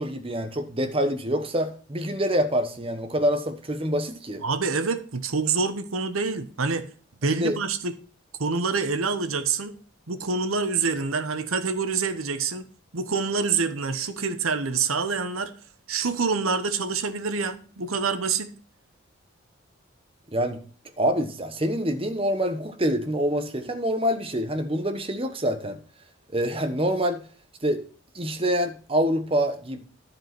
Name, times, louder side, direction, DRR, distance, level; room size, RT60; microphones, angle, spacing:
voice 1, 0.0-4.4 7.4-7.6 20.3-20.6 21.0-25.8 26.3-27.2 27.6-27.8 28.1-29.8, equal, 25° right, 1.1 m, -26 dB
voice 2, 4.4-6.9 7.2-7.9 8.4-9.7 10.1-12.7 12.9-15.5 15.9-18.5, right 4 dB, 90° right, 1.1 m, -26 dB
11.0 x 5.1 x 5.9 m
head